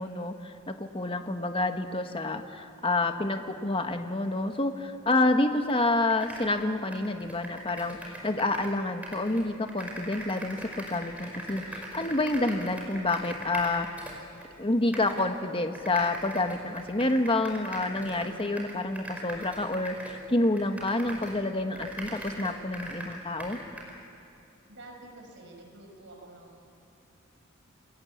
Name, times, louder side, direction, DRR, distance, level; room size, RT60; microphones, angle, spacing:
voice 1, 0.0-13.9 14.6-23.6, left 2 dB, 25° left, 6 dB, 1.4 m, -28 dB
sound 1, 5.7-5.8 6.1-8.8 9.0-14.5 14.9-15.3 15.7-21.4 21.7-24.0, right 1 dB, 5° right, 5.1 m, -41 dB
voice 2, 24.7-26.7, right 2 dB, 60° right, 2 dB, 5.7 m, -48 dB
28.0 x 21.5 x 8.6 m, 2.7 s
head